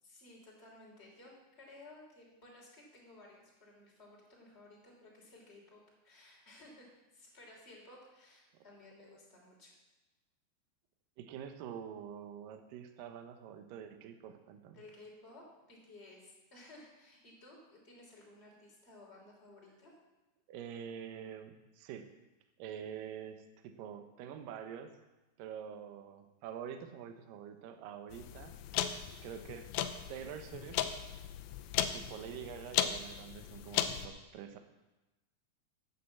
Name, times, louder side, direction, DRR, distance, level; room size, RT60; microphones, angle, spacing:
voice 1, 0.0-9.7 14.7-20.0, left 2 dB, 15° left, -3 dB, 3.1 m, -56 dB
voice 2, 11.2-14.8 20.5-22.1 22.6-24.9 25.4-28.5 29.2-29.7 30.1-30.8 31.9-34.6, right 8 dB, 70° right, 6 dB, 2.2 m, -46 dB
sound 1, 28.1-34.1, left 10 dB, 80° left, 2.2 m, -37 dB
9.3 x 8.6 x 7.6 m, 1.1 s
omnidirectional pair, 4.9 m